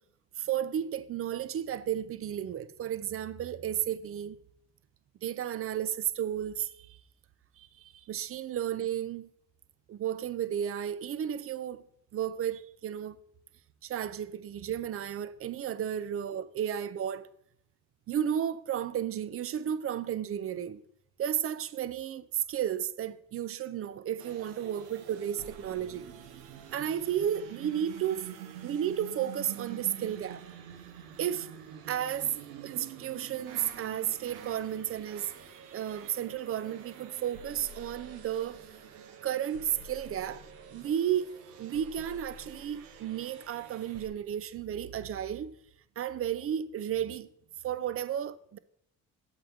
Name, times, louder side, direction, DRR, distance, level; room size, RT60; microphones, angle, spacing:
voice 1, 0.4-4.4 5.2-7.0 7.6-9.3 9.9-11.8 12.1-13.2 13.8-17.3 18.1-20.8 21.2-26.1 26.7-28.3 28.6-30.4 31.2-31.5 31.9-32.4 32.6-38.6 39.2-41.3 41.6-45.6 46.0-47.3 47.6-48.6, right 10 dB, 35° right, 0.4 m, -33 dB
sound 1, 24.2-44.1, right 7 dB, 85° right, 0.7 m, -47 dB
7.5 x 3.6 x 4.5 m
hypercardioid pair, 50°, 45 cm